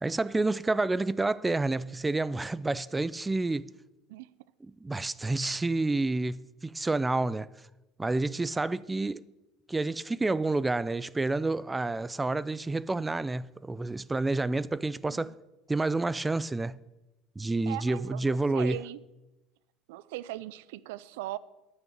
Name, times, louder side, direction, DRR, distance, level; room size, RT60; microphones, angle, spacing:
voice 1, 0.0-3.7 4.6-7.5 8.0-9.2 9.7-15.4 15.7-16.8 17.4-18.8, right 2 dB, 15° right, 0.3 m, -29 dB
voice 2, 17.7-19.0 19.9-21.4, right 16 dB, 80° right, 0.4 m, -39 dB
9.4 x 6.2 x 8.7 m
supercardioid pair, 100°, 0 cm